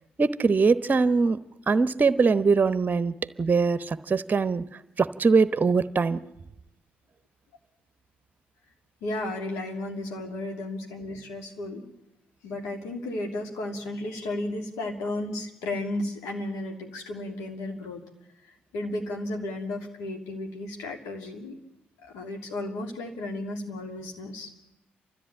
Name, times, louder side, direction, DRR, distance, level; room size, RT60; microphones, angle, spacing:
voice 1, 0.2-1.4 1.7-4.6 5.0-6.2, right 4 dB, 35° right, 14 dB, 1.0 m, -22 dB
voice 2, 9.0-11.8 12.4-18.0 18.4-21.6 22.1-24.5, left 2 dB, 70° left, 2 dB, 2.9 m, -34 dB
29.5 x 13.5 x 8.6 m, 0.90 s
figure-of-eight pair, 40°, 5 cm